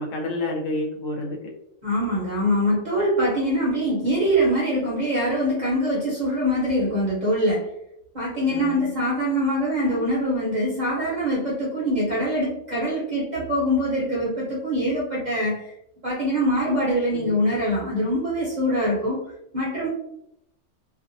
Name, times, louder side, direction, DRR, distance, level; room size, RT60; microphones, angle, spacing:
voice 1, 0.0-1.4 8.5-8.9 17.1-17.4, left 2 dB, 70° left, 0 dB, 0.9 m, -29 dB
voice 2, 1.8-7.7 8.1-15.7 16.0-19.9, equal, 40° right, -7 dB, 0.7 m, -24 dB
2.6 x 2.1 x 2.5 m, 0.79 s
omnidirectional pair, 1.5 m